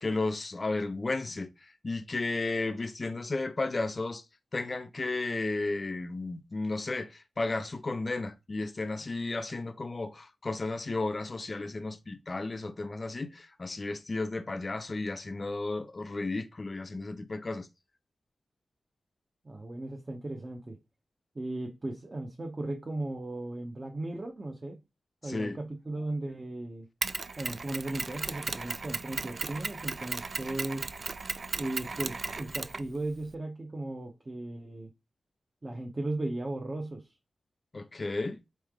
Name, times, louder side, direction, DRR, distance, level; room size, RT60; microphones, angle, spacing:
voice 1, 0.0-1.5 1.8-4.2 4.5-17.7 25.2-25.6 37.7-38.4, left 3 dB, 35° left, 0.5 m, -33 dB
voice 2, 19.4-20.8 21.3-24.8 25.2-26.9 27.4-30.9 31.6-34.9 35.6-37.1, right 2 dB, 25° right, 0.8 m, -36 dB
Mechanisms, 27.0-33.3, right 4 dB, 45° right, 0.3 m, -36 dB
4.4 x 3.2 x 3.6 m
wide cardioid pair, 125°, 0 cm